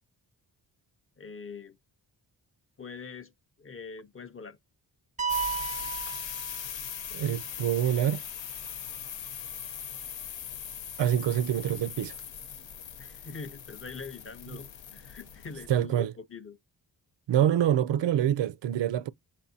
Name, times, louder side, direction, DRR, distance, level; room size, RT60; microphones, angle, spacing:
voice 1, 1.2-1.8 2.8-3.3 3.6-4.6 13.0-16.6, left 5 dB, 30° left, 0.6 m, -43 dB
sound 1, 5.2-7.1, right 7 dB, 20° right, 0.4 m, -34 dB
sound 2, 5.3-15.8, left 8 dB, 90° left, 0.9 m, -40 dB
voice 2, 7.1-8.2 11.0-12.2 15.7-16.1 17.3-19.1, right 10 dB, 70° right, 0.5 m, -26 dB
6.9 x 2.7 x 2.7 m
cardioid pair, 75°, 44 cm